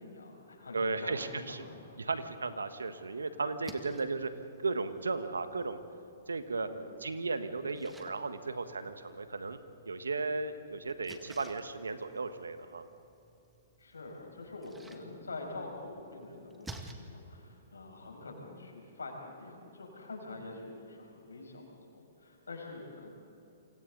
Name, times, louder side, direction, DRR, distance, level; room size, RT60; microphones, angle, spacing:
voice 1, 0.0-2.2 6.7-6.9 13.8-21.7 21.9-23.1, left 2 dB, 90° left, 1 dB, 6.2 m, -45 dB
voice 2, 0.7-1.6 2.0-4.3 4.6-5.8 6.3-6.7 7.0-9.6 9.8-12.8, right 3 dB, 90° right, 9 dB, 1.5 m, -35 dB
Splash splatter, 3.5-16.9, right 2 dB, 10° right, 2.0 m, -55 dB
28.5 x 25.5 x 4.1 m, 2.8 s
hypercardioid pair, 125°, 0 cm